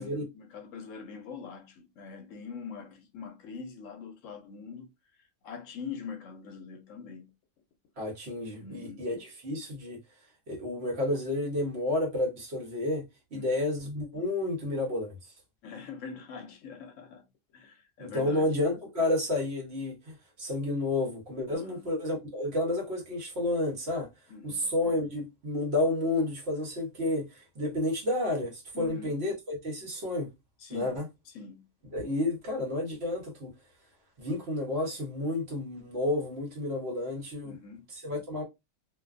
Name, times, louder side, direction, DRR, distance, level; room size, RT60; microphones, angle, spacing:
voice 1, 0.0-4.9 5.4-7.3 8.6-9.1 13.3-13.6 15.6-17.3 17.5-18.5 21.5-21.9 24.3-24.7 28.7-29.2 30.6-31.0 31.3-31.7 37.4-37.9, left 6 dB, 75° left, 0.9 m, -43 dB
voice 2, 8.0-10.0 10.5-13.0 13.3-15.3 18.0-24.1 24.4-30.3 30.7-31.1 31.9-33.5 34.2-37.6 37.9-38.4, left 2 dB, 55° right, 1.1 m, -31 dB
2.5 x 2.2 x 2.4 m
omnidirectional pair, 1.4 m